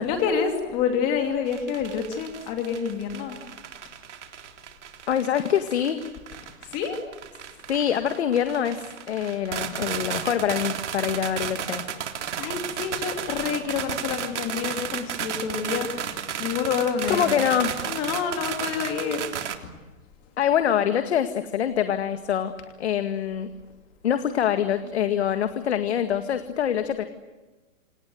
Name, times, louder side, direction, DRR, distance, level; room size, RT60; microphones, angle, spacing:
voice 1, 0.0-3.4 6.5-7.0 12.4-17.5 17.9-19.3, left 7 dB, 20° left, 5 dB, 2.7 m, -28 dB
sound 1, 1.5-19.5, right 8 dB, 60° right, 3.5 m, -33 dB
voice 2, 5.1-6.0 7.7-11.8 17.1-17.7 20.4-22.5 22.8-23.5 24.0-27.0, left 9 dB, 50° left, 9 dB, 2.0 m, -25 dB
28.0 x 27.0 x 7.9 m, 1.2 s
hypercardioid pair, 170°, 40 cm